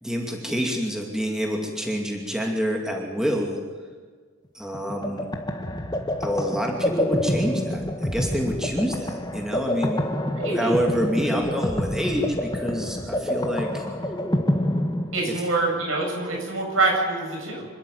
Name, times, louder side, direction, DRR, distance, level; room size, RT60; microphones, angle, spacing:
voice 1, 0.0-3.6 4.5-5.3 6.2-10.0 10.5-13.8 15.3-15.4, equal, 5° right, 0 dB, 2.5 m, -27 dB
sound 1, 4.7-15.6, left 1 dB, 20° left, 1.8 m, -27 dB
voice 2, 10.4-10.7 15.1-17.7, right 2 dB, 80° right, 0 dB, 7.9 m, -25 dB
27.0 x 12.5 x 9.5 m, 1.5 s
head